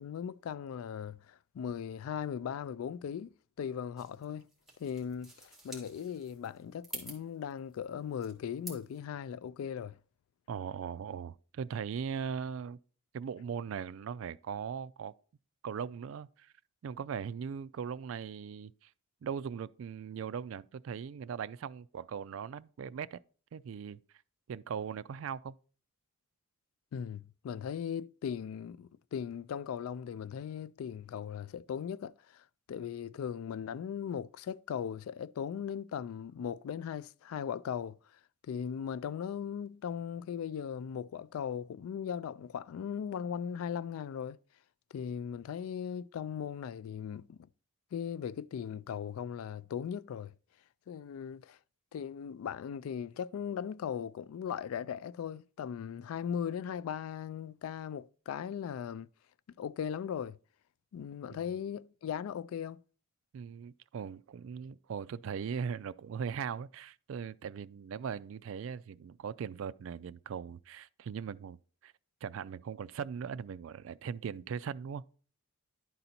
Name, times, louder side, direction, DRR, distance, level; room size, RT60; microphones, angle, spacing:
voice 1, 0.0-4.5 4.8-10.0 26.9-38.0 38.5-44.4 44.9-47.4 47.9-50.3 50.9-51.6 51.9-59.1 59.6-60.4 60.9-62.8, left 8 dB, 85° left, 0.3 m, -38 dB
sound 1, 4.0-9.0, right 2 dB, ahead, 1.9 m, -49 dB
voice 2, 10.5-12.8 13.1-15.1 15.6-16.5 16.8-18.9 19.2-23.2 23.5-24.0 24.5-25.6 61.3-61.4 63.3-71.9 72.2-75.0, right 7 dB, 70° right, 0.3 m, -39 dB
11.0 x 4.0 x 4.2 m
head